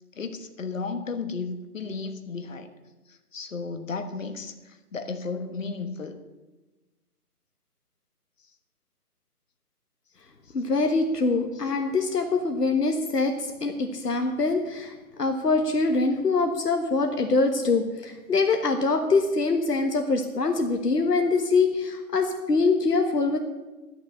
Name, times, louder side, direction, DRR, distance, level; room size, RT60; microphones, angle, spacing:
voice 1, 0.1-2.7 3.1-6.2, left 4 dB, 55° left, 8 dB, 1.4 m, -34 dB
voice 2, 10.5-23.4, left 3 dB, 80° left, 4 dB, 1.4 m, -24 dB
11.5 x 6.6 x 8.0 m, 1.2 s
figure-of-eight pair, 160°, 46 cm